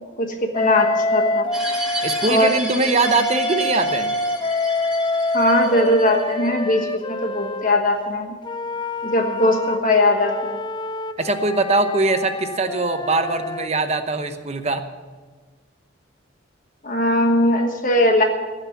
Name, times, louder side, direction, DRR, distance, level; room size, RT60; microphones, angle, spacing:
voice 1, 0.2-1.5 2.3-2.5 5.3-8.3 9.0-10.5 16.8-18.2, left 1 dB, 45° left, 3 dB, 1.3 m, -19 dB
Wind instrument woodwind instrument, 0.5-2.3 3.0-7.8 8.4-13.7, left 2 dB, 25° left, 0.4 m, -26 dB
sound 1, 1.5-6.5, equal, 5° right, 2.1 m, -32 dB
voice 2, 2.0-4.2 11.2-14.8, right 3 dB, 35° right, 8 dB, 0.9 m, -22 dB
17.0 x 6.2 x 9.4 m, 1.4 s
head